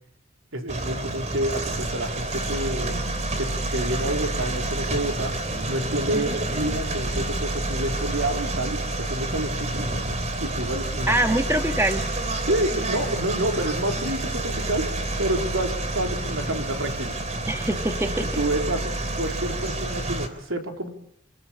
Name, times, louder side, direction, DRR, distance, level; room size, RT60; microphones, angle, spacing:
voice 1, 0.5-3.0 3.4-5.3 5.7-9.9 10.4-11.4 12.5-14.9 15.2-17.2 18.4-20.9, right 1 dB, 85° right, 4 dB, 3.8 m, -28 dB
sound 1, 0.7-20.3, right 2 dB, 35° right, 3.4 m, -29 dB
voice 2, 11.1-12.1 17.5-18.4, right 1 dB, 15° right, 6 dB, 1.7 m, -24 dB
27.5 x 18.5 x 8.7 m, 0.71 s
head